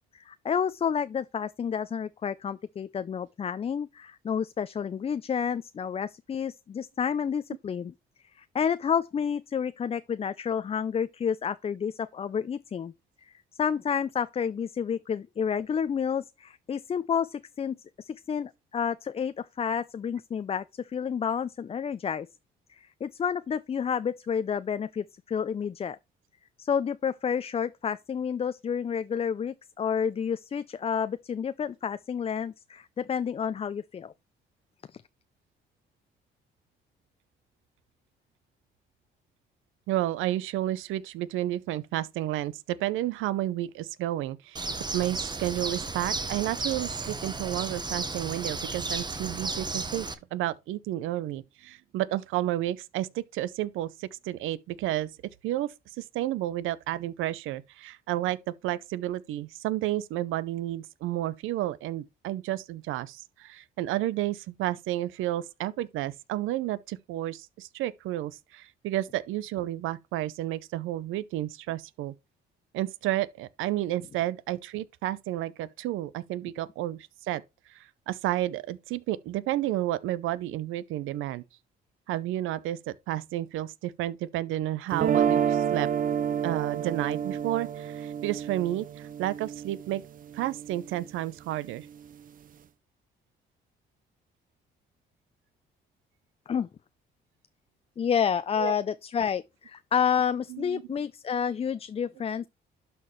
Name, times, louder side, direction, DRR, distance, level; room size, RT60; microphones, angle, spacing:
voice 1, 0.1-7.9 8.4-12.9 13.3-13.4 13.6-22.3 22.7-26.0 26.6-34.1 96.5-96.7 98.0-102.5, left 7 dB, 30° left, 0.4 m, -30 dB
voice 2, 39.9-44.7 44.9-55.1 55.4-72.1 72.7-77.4 77.7-81.4 82.1-85.9 86.4-90.0 90.3-91.9 98.6-98.8 100.5-100.8, right 14 dB, 90° right, 0.6 m, -31 dB
Bird, 44.6-50.1, right 3 dB, 20° right, 1.0 m, -34 dB
sound 1, 84.9-91.0, right 8 dB, 45° right, 0.5 m, -29 dB
12.0 x 4.4 x 3.1 m
cardioid pair, 90°, 20 cm